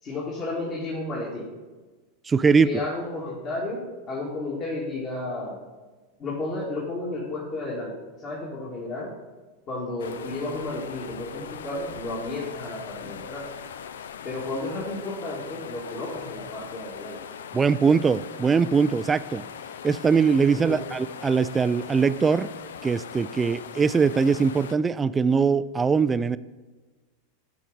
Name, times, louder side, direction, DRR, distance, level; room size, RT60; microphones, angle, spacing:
voice 1, 0.0-1.5 2.5-5.6 6.2-9.1 9.7-13.5 14.2-17.2 20.5-20.8, left 2 dB, 35° left, -5 dB, 2.0 m, -32 dB
voice 2, 2.3-2.7 17.5-19.4 19.8-22.5 22.8-26.4, right 5 dB, 20° right, 16 dB, 0.3 m, -21 dB
sound 1, 10.0-24.8, left 8 dB, 70° left, 0.4 m, -40 dB
13.0 x 4.8 x 4.0 m, 1.3 s
figure-of-eight pair, 85°, 0 cm